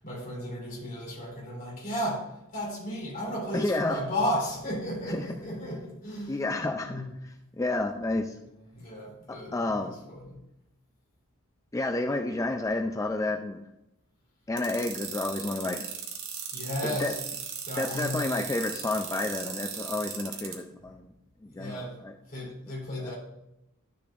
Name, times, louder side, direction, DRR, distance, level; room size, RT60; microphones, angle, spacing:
voice 1, 0.0-7.1 8.7-10.4 16.5-17.2 17.6-18.2 21.4-22.0 22.3-23.1, equal, 40° left, -3 dB, 3.3 m, -34 dB
voice 2, 3.5-4.0 5.1-5.2 6.3-8.4 9.3-10.0 11.7-13.7 14.5-15.9 16.8-17.1 17.8-21.1 21.4-22.1 23.0-23.1, left 2 dB, 15° left, 4 dB, 0.4 m, -30 dB
sound 1, 14.6-20.5, right 8 dB, 60° right, 1.5 m, -36 dB
11.5 x 6.9 x 2.5 m, 0.88 s
head